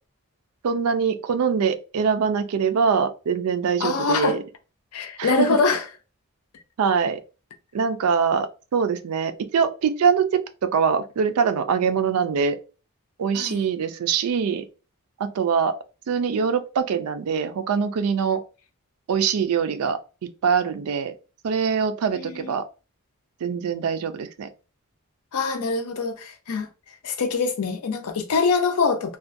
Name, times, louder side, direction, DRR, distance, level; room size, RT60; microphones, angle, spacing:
voice 1, 0.6-4.4 5.2-5.5 6.8-7.2 7.7-12.6 13.2-14.7 15.2-15.7 16.1-18.4 19.1-20.0 20.4-21.2 21.4-22.6 23.4-24.5, right 6 dB, 85° right, 0.4 m, -23 dB
voice 2, 3.8-4.4 4.9-5.8 13.3-13.6 22.1-22.5 25.3-26.7 27.0-29.2, left 4 dB, 85° left, 0.5 m, -24 dB
2.4 x 2.2 x 2.5 m
head